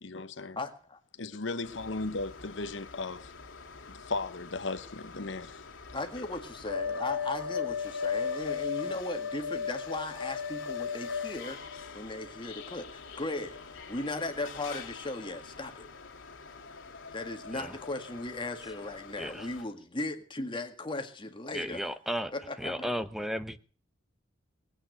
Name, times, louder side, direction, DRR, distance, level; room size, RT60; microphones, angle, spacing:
voice 1, 0.0-0.6 1.2-3.3 3.9-5.6 6.2-6.3, left 3 dB, 70° left, 1.1 m, -36 dB
voice 2, 0.6-1.0 5.9-11.6 11.9-15.9 17.1-21.8 22.3-22.9, left 2 dB, 25° left, 1.9 m, -37 dB
sound 1, 1.6-19.6, left 6 dB, 85° left, 2.4 m, -39 dB
voice 3, 21.5-22.3 22.6-23.6, equal, ahead, 0.8 m, -34 dB
20.0 x 8.8 x 6.5 m
head